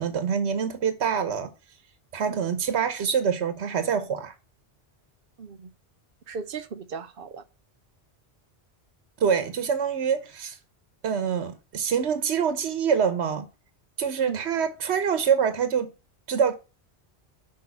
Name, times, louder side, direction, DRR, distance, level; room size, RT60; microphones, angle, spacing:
voice 1, 0.0-1.5 2.1-4.3 9.2-10.6 11.0-13.5 14.0-15.9 16.3-16.5, right 7 dB, 85° right, 1.2 m, -25 dB
voice 2, 5.4-5.7 6.3-7.4 14.2-14.4, right 5 dB, 60° right, 0.9 m, -36 dB
6.3 x 4.7 x 5.7 m
omnidirectional pair, 1.1 m